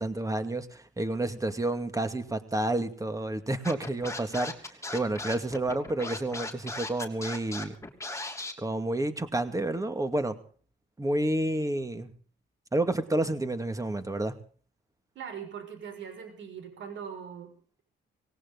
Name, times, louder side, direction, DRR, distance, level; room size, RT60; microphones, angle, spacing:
voice 1, 0.0-7.8 8.6-10.4 11.0-12.1 12.7-14.4, right 1 dB, 15° right, 9 dB, 2.2 m, -30 dB
Scratching (performance technique), 3.6-8.5, left 2 dB, 15° left, 3.0 m, -37 dB
voice 2, 15.1-17.5, right 7 dB, 70° right, 6 dB, 6.3 m, -41 dB
18.5 x 17.5 x 4.0 m, 0.44 s
cardioid pair, 90°, 20 cm